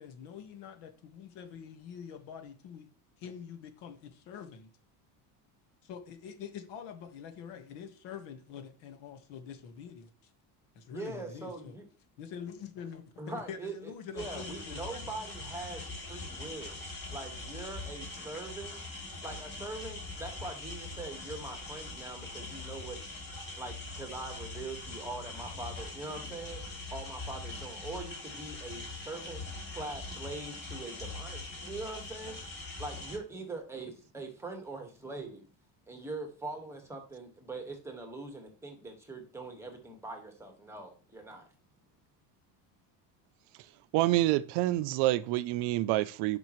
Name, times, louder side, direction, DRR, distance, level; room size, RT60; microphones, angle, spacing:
voice 1, 0.0-2.9 3.2-4.7 5.8-10.1 10.7-11.7 12.2-15.0, left 7 dB, 70° left, 1.6 m, -45 dB
voice 2, 10.9-11.9 13.2-16.8 17.1-18.8 19.2-23.0 23.6-26.6 26.9-29.4 29.7-32.5 32.8-35.5 35.9-41.5, right 2 dB, 5° right, 1.5 m, -42 dB
sound 1, 14.2-33.2, left 2 dB, 25° left, 2.9 m, -42 dB
voice 3, 43.5-46.4, right 16 dB, 65° right, 0.6 m, -28 dB
10.5 x 5.3 x 3.1 m
cardioid pair, 155°, 43 cm